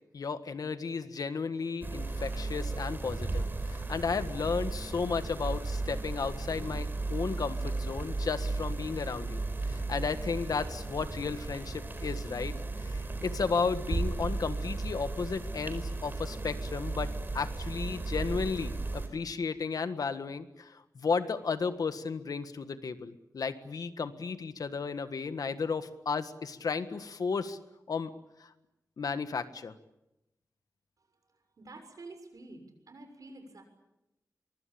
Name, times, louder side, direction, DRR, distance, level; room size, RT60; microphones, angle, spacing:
voice 1, 0.1-12.5 12.8-27.6 27.9-28.1 28.4-28.5 29.0-29.7, left 5 dB, 85° left, 10 dB, 1.6 m, -34 dB
sound 1, 1.8-19.1, right 2 dB, 35° right, 4.6 m, -35 dB
voice 2, 31.0-33.6, right 2 dB, 75° right, 6 dB, 6.7 m, -50 dB
24.0 x 23.5 x 8.7 m, 0.91 s
wide cardioid pair, 115°, 6 cm